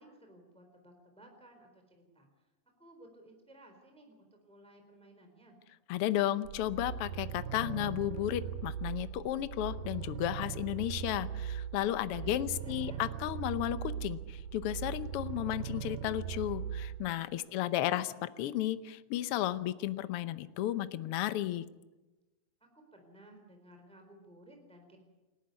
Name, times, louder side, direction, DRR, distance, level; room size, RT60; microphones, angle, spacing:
voice 1, 0.0-2.3 2.8-5.6 12.1-13.0 17.5-18.1 22.6-25.0, right 1 dB, ahead, 3 dB, 3.7 m, -57 dB
voice 2, 5.9-21.7, left 13 dB, 80° left, 13 dB, 1.3 m, -33 dB
sound 1, 6.5-17.1, right 9 dB, 80° right, 2.5 m, -40 dB
28.0 x 12.5 x 9.6 m, 1.1 s
omnidirectional pair, 3.7 m